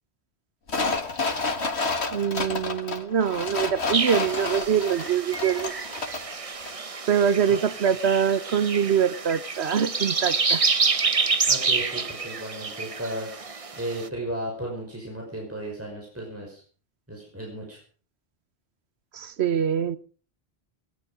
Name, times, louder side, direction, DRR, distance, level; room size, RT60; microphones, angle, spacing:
sound 1, 0.7-6.3 6.7-6.8, left 3 dB, 85° left, 2.1 m, -29 dB
voice 1, 2.1-5.7 7.1-10.6 19.1-20.0, right 8 dB, 80° right, 1.2 m, -24 dB
sound 2, 3.9-14.1, right 4 dB, 35° right, 0.9 m, -28 dB
voice 2, 11.5-13.5 13.8-16.6 17.1-17.8, right 1 dB, 15° right, 5.6 m, -35 dB
20.0 x 12.0 x 5.1 m
omnidirectional pair, 1.1 m